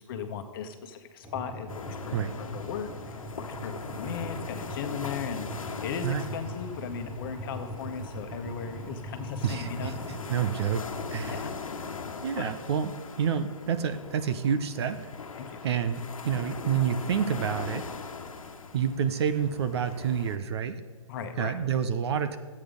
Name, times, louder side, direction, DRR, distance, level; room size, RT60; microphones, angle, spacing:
voice 1, 0.0-5.5 5.8-9.9 11.3-11.5 12.4-12.5 15.4-15.6 21.1-21.6, left 7 dB, 40° left, 7 dB, 1.2 m, -37 dB
sound 1, 1.2-10.3, right 1 dB, 10° right, 1.2 m, -41 dB
sound 2, 1.7-20.4, left 5 dB, 70° left, 1.3 m, -40 dB
voice 2, 9.4-9.9 10.3-11.4 12.2-12.9 13.2-15.0 15.6-17.8 18.7-20.8 21.4-22.4, right 8 dB, 50° right, 10 dB, 0.8 m, -28 dB
12.5 x 8.6 x 5.2 m, 1.4 s
figure-of-eight pair, 130°, 18 cm